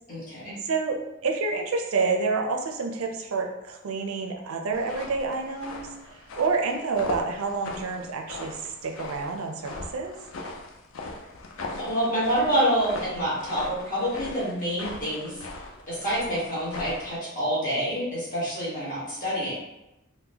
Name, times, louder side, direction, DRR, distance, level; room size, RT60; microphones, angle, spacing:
voice 1, 0.1-0.5 11.8-15.5 15.9-19.5, equal, 40° left, -8 dB, 1.4 m, -27 dB
voice 2, 0.6-10.1, right 4 dB, 85° right, 3 dB, 0.5 m, -28 dB
sound 1, 4.7-17.2, left 2 dB, 70° left, 0.4 m, -39 dB
3.8 x 2.1 x 2.8 m, 0.93 s
head